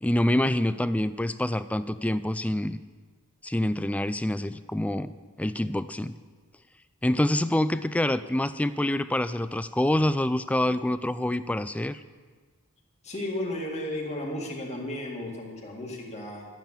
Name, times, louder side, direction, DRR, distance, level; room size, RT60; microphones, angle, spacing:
voice 1, 0.0-2.8 3.4-6.2 7.0-12.0, left 1 dB, 5° left, 14 dB, 0.3 m, -26 dB
voice 2, 13.0-16.5, left 1 dB, 30° left, -1 dB, 2.0 m, -34 dB
12.0 x 9.1 x 7.3 m, 1.5 s
head